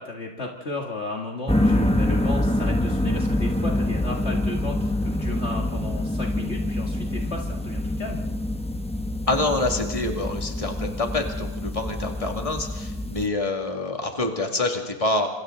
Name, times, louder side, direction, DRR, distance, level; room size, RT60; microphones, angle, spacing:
voice 1, 0.0-8.3, left 2 dB, 50° left, 1 dB, 2.0 m, -34 dB
sound 1, 1.5-13.3, left 1 dB, 5° left, 0.8 m, -26 dB
voice 2, 9.3-15.3, left 2 dB, 25° left, 3 dB, 2.3 m, -26 dB
28.0 x 26.5 x 3.9 m, 1.1 s
omnidirectional pair, 1.6 m